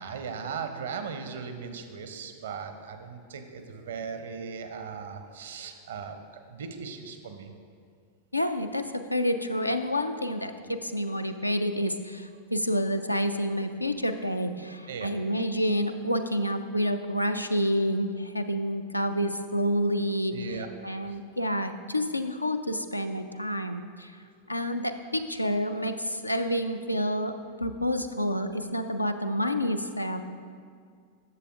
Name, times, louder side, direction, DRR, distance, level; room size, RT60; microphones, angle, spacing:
voice 1, 0.0-7.5 14.9-15.1 20.3-20.7 21.0-21.2 24.2-24.5 28.4-28.6 30.1-30.2, right 6 dB, 60° right, 7 dB, 0.6 m, -38 dB
voice 2, 8.3-20.3 20.8-24.2 24.5-27.3 27.6-30.2, equal, 85° left, 8 dB, 0.3 m, -28 dB
11.0 x 6.8 x 2.4 m, 2.1 s
figure-of-eight pair, 90°, 0 cm